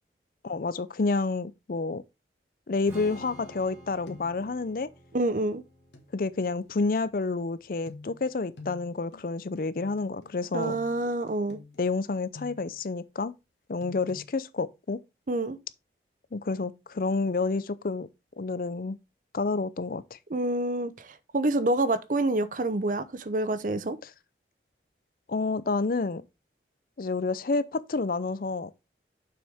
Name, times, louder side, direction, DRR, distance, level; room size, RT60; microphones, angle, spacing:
voice 1, 0.4-2.0 2.7-4.9 6.1-10.8 11.8-13.3 13.7-15.0 16.3-18.1 18.4-19.0 19.3-20.2 25.3-26.2 27.0-28.7, left 3 dB, 55° left, 0.5 m, -29 dB
Strum, 2.8-9.1, equal, 15° right, 3.2 m, -50 dB
sound 1, 3.3-3.8 4.1-4.5 5.9-6.1 7.9-12.9 13.8-14.2, left 3 dB, 80° left, 1.9 m, -48 dB
voice 2, 5.1-5.6 10.5-11.6 15.3-15.6 20.3-24.0, right 2 dB, 50° right, 0.7 m, -27 dB
7.1 x 6.1 x 3.5 m
head